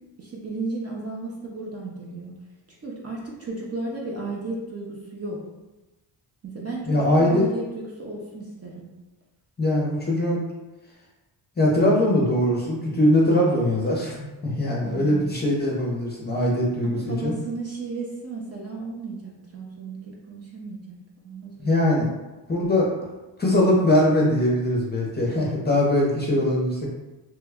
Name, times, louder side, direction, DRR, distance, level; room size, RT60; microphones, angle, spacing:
voice 1, 0.2-2.4 2.8-5.4 6.4-8.9 14.8-15.4 16.8-21.0 21.2-21.7, right 3 dB, 30° right, -3 dB, 0.6 m, -34 dB
voice 2, 6.9-7.4 9.6-10.4 11.6-17.3 21.6-22.1 22.5-22.9 23.4-26.9, left 1 dB, 20° left, -3 dB, 0.6 m, -21 dB
3.0 x 2.2 x 3.5 m, 1.1 s
cardioid pair, 115°, 47 cm